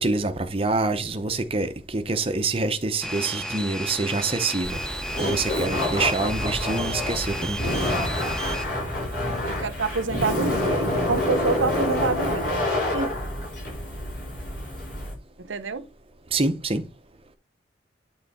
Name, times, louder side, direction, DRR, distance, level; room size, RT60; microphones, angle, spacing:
voice 1, 0.0-4.8 5.2-7.8 16.3-16.8, right 3 dB, 30° right, 0.8 m, -26 dB
sound 1, 3.0-8.7, right 1 dB, 5° left, 0.6 m, -33 dB
Laughter, 4.6-15.1, left 1 dB, 50° left, 4.5 m, -27 dB
voice 2, 9.1-12.6 12.9-13.1 15.4-15.9, right 4 dB, 80° right, 0.8 m, -27 dB
9.0 x 3.9 x 4.1 m
head